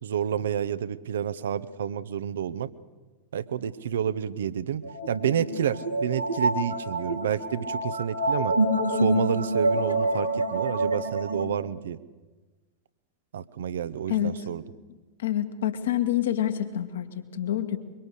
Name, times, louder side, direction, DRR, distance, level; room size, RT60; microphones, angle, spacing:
voice 1, 0.0-2.7 3.3-8.6 8.9-12.0 13.3-14.6, right 9 dB, 65° right, 15 dB, 0.9 m, -29 dB
sound 1, 4.8-11.4, right 1 dB, 85° right, 2.7 m, -27 dB
voice 2, 15.2-17.8, left 11 dB, 60° left, 8 dB, 1.9 m, -27 dB
24.0 x 23.0 x 6.6 m, 1.3 s
figure-of-eight pair, 90°, 0 cm